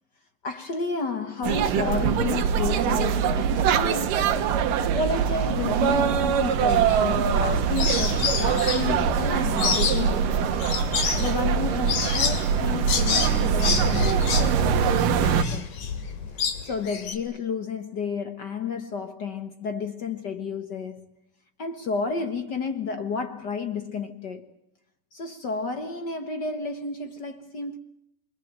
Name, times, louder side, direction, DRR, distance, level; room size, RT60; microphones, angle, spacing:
voice 1, 0.4-10.6 10.9-15.7 16.3-21.1 21.6-24.5 25.1-27.8, left 5 dB, 55° left, 1.2 m, -32 dB
sound 1, 1.4-15.4, right 7 dB, 80° right, 3.1 m, -23 dB
sound 2, 6.7-7.4 7.8-17.1, left 6 dB, 75° left, 4.1 m, -29 dB
29.0 x 24.5 x 7.6 m
omnidirectional pair, 3.8 m